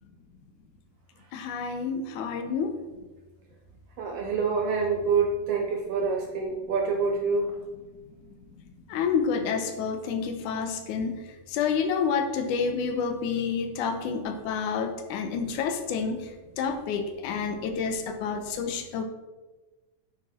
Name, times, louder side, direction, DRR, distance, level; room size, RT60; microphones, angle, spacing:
voice 1, 1.3-2.7 8.5-8.6 8.9-19.0, left 6 dB, 75° left, 6 dB, 2.3 m, -29 dB
voice 2, 4.0-7.5, right 4 dB, 85° right, 1 dB, 1.3 m, -26 dB
9.6 x 6.6 x 4.2 m, 1.2 s
omnidirectional pair, 3.8 m